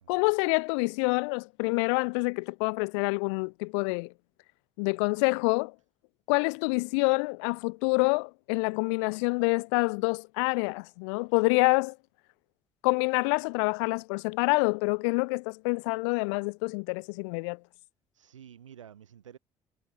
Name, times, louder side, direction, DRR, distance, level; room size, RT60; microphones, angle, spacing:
voice 1, 0.1-4.1 4.8-5.7 6.3-12.0 12.8-17.6, left 33 dB, 70° left, 1.4 m, -27 dB
voice 2, 18.1-19.4, right 9 dB, 85° right, 2.8 m, -50 dB
figure-of-eight pair, 50°, 16 cm